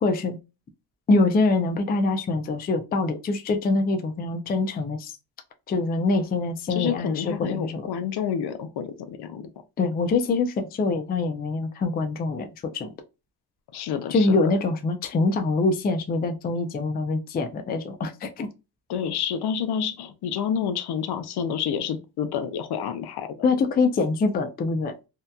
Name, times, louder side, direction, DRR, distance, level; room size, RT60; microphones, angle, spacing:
voice 1, 0.0-0.4 1.1-5.1 5.7-7.8 9.8-12.9 14.1-18.5 23.4-24.9, left 3 dB, 25° left, 0.3 m, -24 dB
voice 2, 6.7-9.5 13.7-14.4 18.9-23.3, left 8 dB, 75° left, 0.6 m, -29 dB
2.8 x 2.1 x 2.2 m
cardioid pair, 125°, 40 cm